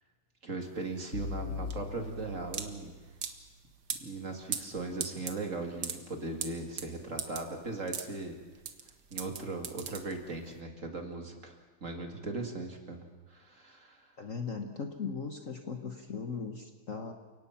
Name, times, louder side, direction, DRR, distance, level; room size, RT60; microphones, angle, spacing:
voice 1, 0.4-2.9 4.0-8.4 9.1-13.0 13.3-14.1, right 3 dB, 40° right, 4 dB, 2.4 m, -38 dB
sound 1, 0.6-10.5, right 7 dB, 55° right, 1.7 m, -40 dB
sound 2, 1.1-3.2, left 5 dB, 85° left, 3.5 m, -40 dB
voice 2, 14.2-17.1, left 5 dB, 45° left, 5 dB, 1.4 m, -38 dB
29.5 x 17.5 x 5.8 m, 1.4 s
omnidirectional pair, 2.3 m